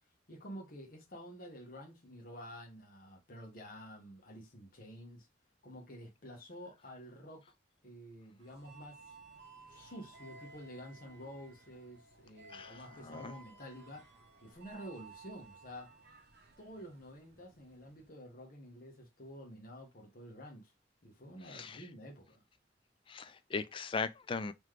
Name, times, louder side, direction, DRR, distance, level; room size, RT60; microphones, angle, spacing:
voice 1, 0.3-5.3 5.6-7.4 7.8-9.2 9.7-14.1 14.4-15.9 16.6-20.7 21.0-22.4, equal, 50° left, 1.2 m, -50 dB
sound 1, 8.4-18.1, right 3 dB, 60° right, 0.8 m, -57 dB
voice 2, 12.5-13.3 21.5-21.8 23.1-24.5, left 4 dB, 30° left, 0.4 m, -39 dB
3.9 x 3.0 x 3.2 m
head